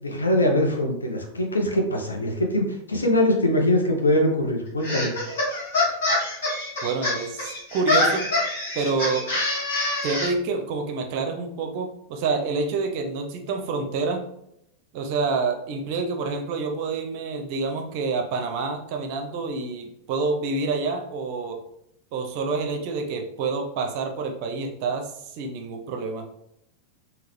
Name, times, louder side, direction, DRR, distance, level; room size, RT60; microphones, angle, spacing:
voice 1, 0.0-5.1, left 1 dB, 80° left, 2 dB, 0.7 m, -22 dB
sound 1, 4.8-10.3, left 2 dB, 60° left, 1.3 m, -25 dB
voice 2, 6.8-8.3 8.7-9.3 10.0-14.2 14.9-21.6 22.1-26.3, right 4 dB, 45° right, 3 dB, 0.5 m, -27 dB
3.7 x 2.3 x 3.0 m, 0.77 s
figure-of-eight pair, 90°, 0 cm